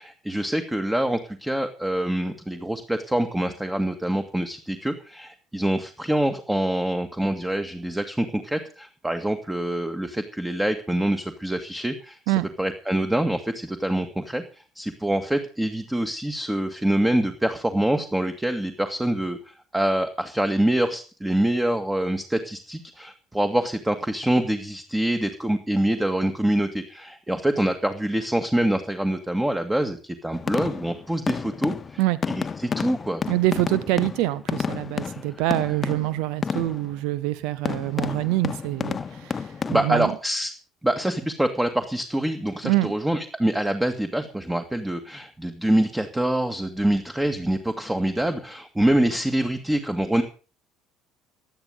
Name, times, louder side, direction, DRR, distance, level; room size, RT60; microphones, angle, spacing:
voice 1, 0.0-32.0 32.3-33.2 39.7-40.5 40.8-50.2, right 1 dB, 10° right, 2.1 m, -25 dB
sound 1, 30.3-37.0 37.7-39.9, left 6 dB, 30° left, 0.8 m, -30 dB
voice 2, 33.3-40.1 42.6-42.9, right 17 dB, 60° right, 0.9 m, -25 dB
17.0 x 11.5 x 5.4 m
figure-of-eight pair, 60°, 0 cm